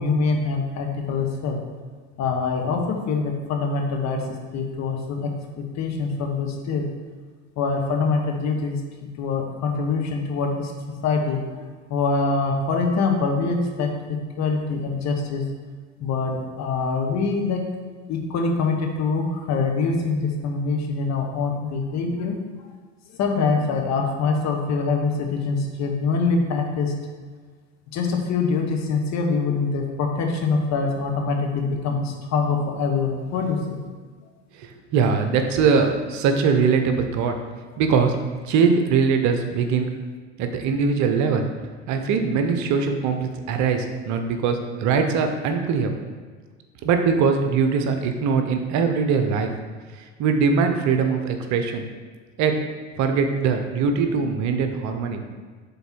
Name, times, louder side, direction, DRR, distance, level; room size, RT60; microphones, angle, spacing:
voice 1, 0.0-1.6 2.2-6.9 7.6-8.8 9.2-10.7 11.0-15.5 16.0-17.6 18.1-22.7 23.2-26.9 27.9-33.8, left 4 dB, 50° left, 2 dB, 1.2 m, -24 dB
voice 2, 34.6-37.3 37.8-38.1 38.4-39.9 40.4-41.4 41.9-45.9 46.8-49.5 50.2-51.8 52.4-52.5 53.0-55.2, right 5 dB, 50° right, 5 dB, 0.9 m, -21 dB
7.0 x 3.8 x 4.5 m, 1.5 s
hypercardioid pair, 75°, 36 cm